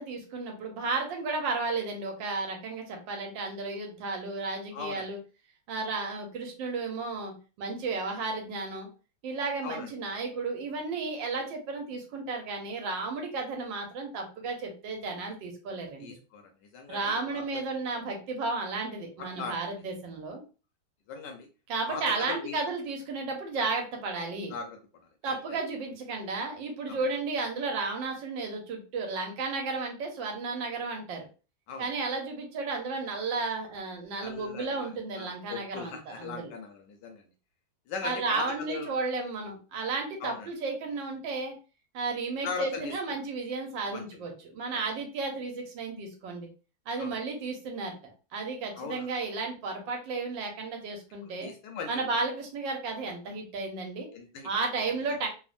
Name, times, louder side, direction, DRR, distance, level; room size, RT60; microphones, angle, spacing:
voice 1, 0.0-5.2 5.7-8.9 9.2-16.2 16.9-20.4 21.7-24.5 25.2-31.3 31.8-36.5 38.0-41.5 41.9-46.5 46.9-47.9 48.3-51.5 51.9-54.1 54.4-55.3, right 3 dB, 75° right, 2 dB, 1.4 m, -33 dB
voice 2, 4.7-5.1 9.6-9.9 16.0-16.4 16.7-17.6 19.3-19.6 21.1-21.5 21.9-22.6 24.5-24.8 25.3-25.4 26.9-27.0 31.7-31.9 34.2-37.2 37.9-38.9 40.2-40.5 42.4-43.2 43.8-44.1 47.0-47.2 48.8-49.1 51.2-51.9 54.1-54.5, left 5 dB, 75° left, 4 dB, 1.1 m, -39 dB
3.4 x 2.1 x 2.4 m, 0.34 s
omnidirectional pair, 2.1 m